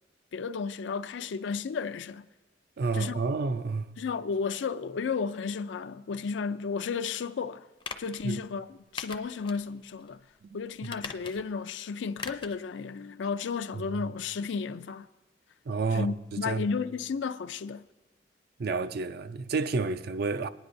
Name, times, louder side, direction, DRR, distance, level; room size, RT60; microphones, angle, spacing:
voice 1, 0.3-2.2 2.9-3.2 4.0-7.7 8.0-10.2 10.5-15.1 15.9-17.8, left 5 dB, 80° left, 0.4 m, -33 dB
voice 2, 2.8-3.9 8.2-8.4 10.4-10.6 10.8-11.0 13.7-14.1 15.7-16.7 18.6-20.5, right 4 dB, 60° right, 0.4 m, -30 dB
sound 1, 7.8-8.2 9.0-9.6 10.0-10.1 10.8-11.6 12.2-12.6 12.9-13.0, left 5 dB, 25° left, 0.5 m, -40 dB
19.0 x 9.8 x 2.6 m
head